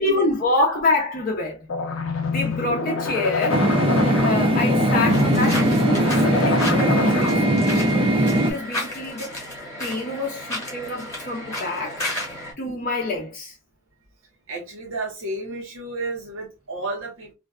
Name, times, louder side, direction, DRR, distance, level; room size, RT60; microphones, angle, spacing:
voice 1, 0.0-1.7 2.2-3.6 4.2-9.4 9.8-13.6, left 2 dB, 45° left, 0.5 m, -27 dB
sound 1, 1.7-7.7, left 4 dB, 90° left, 0.5 m, -26 dB
sound 2, 3.5-8.5, right 1 dB, 25° right, 0.4 m, -20 dB
sound 3, 5.1-12.5, left 1 dB, 15° left, 1.0 m, -33 dB
voice 2, 14.5-17.3, right 2 dB, 85° right, 0.7 m, -32 dB
2.5 x 2.1 x 2.3 m
head